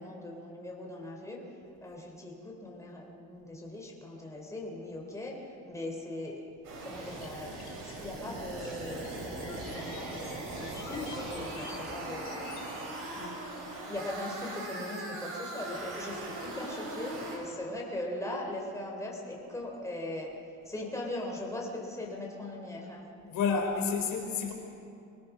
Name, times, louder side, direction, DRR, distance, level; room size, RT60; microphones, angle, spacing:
voice 1, 0.0-1.4 1.8-5.4 5.6-6.4 6.8-7.5 7.8-12.6 13.9-20.3 20.7-23.0, left 1 dB, 10° left, -2 dB, 3.9 m, -40 dB
sound 1, 6.6-17.4, right 2 dB, 85° right, 6.5 m, -40 dB
sound 2, 7.2-12.7, left 5 dB, 55° left, 2.9 m, -49 dB
voice 2, 23.2-24.5, left 5 dB, 80° left, 3 dB, 4.1 m, -30 dB
25.0 x 18.5 x 6.3 m, 2.5 s
cardioid pair, 120°, 32 cm